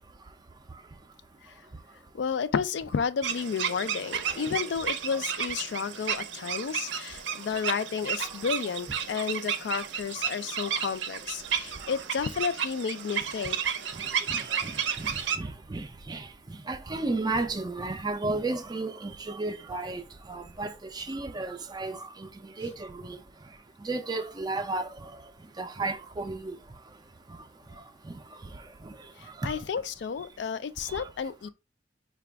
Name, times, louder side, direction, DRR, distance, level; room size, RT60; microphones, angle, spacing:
voice 1, 2.1-13.6 29.2-31.5, left 6 dB, 70° left, 0.4 m, -32 dB
sound 1, 3.2-15.4, right 8 dB, 85° right, 0.5 m, -32 dB
voice 2, 14.3-16.2 16.7-20.0 20.3-22.3 22.6-23.2 23.8-24.8 25.6-26.5 29.4-29.6 30.9-31.0, right 2 dB, 20° right, 0.4 m, -33 dB
4.9 x 2.3 x 3.3 m
head